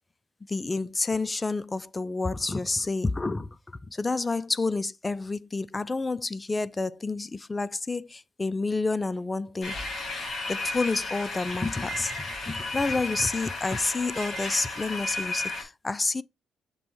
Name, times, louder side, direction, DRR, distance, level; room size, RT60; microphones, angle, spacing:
voice 1, 0.5-3.6 3.9-9.8 10.5-16.2, left 3 dB, 20° left, 0.4 m, -29 dB
sound 1, 9.6-15.6, left 2 dB, 40° left, 4.3 m, -33 dB
6.9 x 3.1 x 4.5 m
cardioid pair, 90°, 0 cm